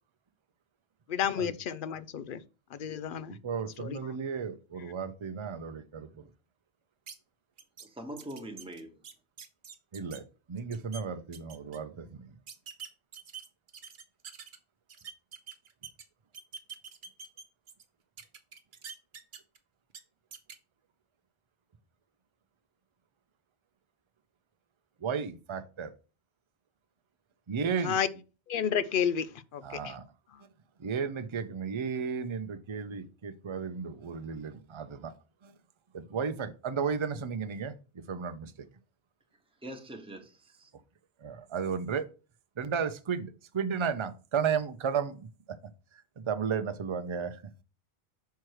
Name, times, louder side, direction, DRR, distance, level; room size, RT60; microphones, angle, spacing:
voice 1, 1.1-2.4 2.7-3.4 3.8-4.0 27.8-28.1 28.5-29.9 30.3-30.4, left 8 dB, 60° left, 0.7 m, -31 dB
voice 2, 3.3-6.3 9.9-12.4 25.0-25.9 27.5-28.0 29.6-30.0 30.8-35.1 35.4-35.5 35.9-37.7 38.1-38.7 41.2-42.0 42.6-45.6 46.2-47.5, right 6 dB, 35° right, 0.5 m, -34 dB
sound 1, 7.1-7.2 7.6-7.9 8.2-10.2 10.6-11.0 11.3-11.8 12.5-14.6 14.9-16.0 16.3-17.8 18.2-19.6 19.9-20.0 20.3-20.6, right 6 dB, 55° right, 0.9 m, -45 dB
voice 3, 7.8-9.0 39.6-40.7, right 1 dB, 5° right, 1.1 m, -43 dB
6.1 x 4.6 x 4.7 m
omnidirectional pair, 1.1 m